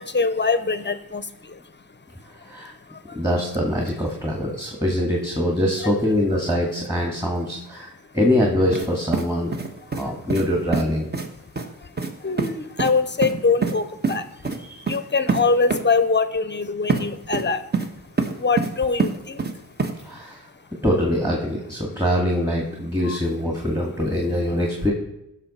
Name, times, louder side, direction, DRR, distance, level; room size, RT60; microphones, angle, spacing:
voice 1, 0.0-3.2 5.8-5.9 9.9-10.1 11.6-14.5 14.8-17.7 18.0-19.6 19.9-20.6 23.0-23.2 24.0-24.1, left 4 dB, 30° left, 12 dB, 0.8 m, -25 dB
voice 2, 2.4-2.7 3.1-9.5 9.9-11.1 14.6-14.8 20.0-20.4 20.8-24.9, left 1 dB, 10° right, 0 dB, 2.1 m, -23 dB
sound 1, 8.7-8.9 9.1-10.0 10.3-10.5 10.7-10.8 11.1-11.3 11.6-11.7 12.0-12.1 12.4-12.5 12.8-12.9 13.2-13.7 14.0-14.2 14.4-14.6 14.9-15.0 15.3-15.4 15.7-15.8 16.9-17.0 17.3-17.9 18.2-18.7 19.0-19.5 19.8-19.9, right 4 dB, 25° right, 1.3 m, -24 dB
15.5 x 6.2 x 4.3 m, 0.87 s
cardioid pair, 80°, 37 cm